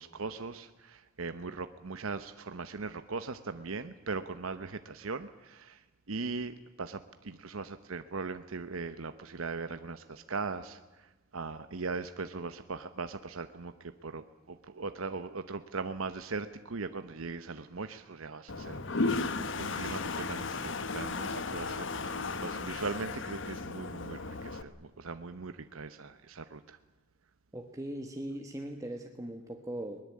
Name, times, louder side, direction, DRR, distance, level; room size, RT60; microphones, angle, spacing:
voice 1, 0.0-5.8 6.1-11.1 11.3-26.8, right 4 dB, 85° right, 10 dB, 1.0 m, -39 dB
Toilet flush, 18.5-24.6, left 3 dB, 65° left, 1.3 m, -35 dB
voice 2, 27.5-30.0, right 1 dB, 15° right, 3 dB, 1.4 m, -39 dB
22.0 x 20.5 x 8.6 m, 1.1 s
head